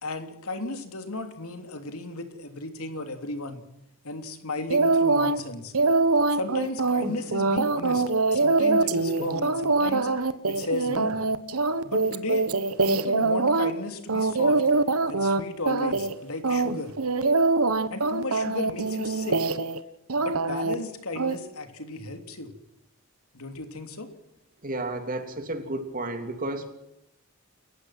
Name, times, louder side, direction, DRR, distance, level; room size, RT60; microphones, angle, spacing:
voice 1, 0.0-3.6 4.0-5.7 6.3-8.0 8.3-11.2 11.8-12.5 12.9-14.6 15.1-16.9 17.9-19.4 20.2-22.5 23.3-24.1, left 2 dB, 75° left, 7 dB, 3.0 m, -35 dB
sound 1, 4.7-5.4 5.7-13.7 14.1-15.4 15.7-16.1 16.4-19.8 20.1-20.7 21.2-21.3, right 3 dB, 75° right, 1.3 m, -23 dB
voice 2, 24.6-26.7, right 2 dB, 40° right, 6 dB, 3.1 m, -32 dB
29.5 x 15.0 x 6.0 m, 0.84 s
head